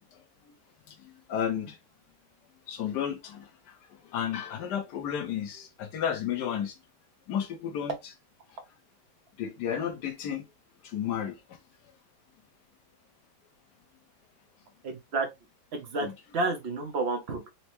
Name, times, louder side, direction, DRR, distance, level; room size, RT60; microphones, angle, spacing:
voice 1, 0.9-1.8 2.7-3.8 4.0-6.8 7.3-7.9 9.4-10.4 10.8-11.3 16.0-16.1, left 9 dB, 65° left, 1.2 m, -32 dB
voice 2, 14.8-15.3 15.7-16.1 16.3-17.5, right 3 dB, 70° right, 0.6 m, -30 dB
4.4 x 2.1 x 2.9 m
omnidirectional pair, 2.2 m